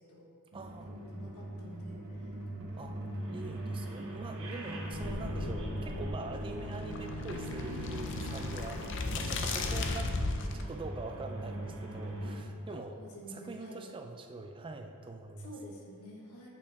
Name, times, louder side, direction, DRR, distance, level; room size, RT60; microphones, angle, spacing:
voice 1, 0.5-0.9 2.8-3.0 3.3-10.1 10.5-13.0 13.3-15.5, right 3 dB, 25° right, 5 dB, 0.3 m, -44 dB
sound 1, 0.5-12.4, right 1 dB, 60° right, 1.1 m, -41 dB
voice 2, 1.1-2.4 12.7-13.8 15.4-16.5, equal, 75° left, -2 dB, 1.3 m, -49 dB
Bowed string instrument, 4.2-10.2, equal, 85° right, 1.0 m, -45 dB
sound 2, 4.9-10.6, left 3 dB, 55° left, 0.5 m, -36 dB
8.3 x 5.5 x 3.4 m, 2.5 s
head